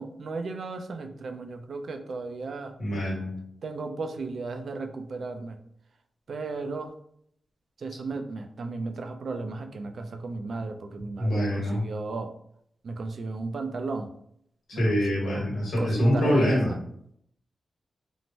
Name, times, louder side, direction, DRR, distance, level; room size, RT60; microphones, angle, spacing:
voice 1, 0.0-2.7 3.6-5.6 6.3-6.9 7.8-12.3 12.8-14.1 14.7-15.4 15.8-16.8, right 3 dB, 65° right, 7 dB, 0.3 m, -35 dB
voice 2, 2.8-3.3 11.2-11.8 14.7-16.7, equal, 90° left, -4 dB, 1.2 m, -24 dB
3.1 x 2.1 x 2.6 m, 0.71 s
cardioid pair, 75°, 0 cm